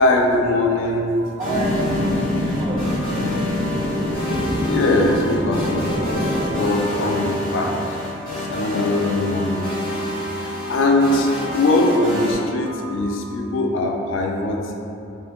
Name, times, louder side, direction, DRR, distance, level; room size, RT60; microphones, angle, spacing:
voice 1, 0.0-1.2 4.7-8.0 8.3-9.7 10.4-14.7, left 2 dB, 70° left, 2 dB, 0.3 m, -21 dB
sound 1, 1.2-13.1, right 4 dB, 65° right, 0.8 m, -41 dB
sound 2, 1.4-12.3, left 1 dB, 45° left, 1.2 m, -27 dB
voice 2, 1.4-3.4, right 1 dB, 25° right, -3 dB, 0.3 m, -28 dB
sound 3, 1.5-6.6, equal, 10° left, 0.8 m, -25 dB
2.7 x 2.6 x 3.3 m, 2.6 s
head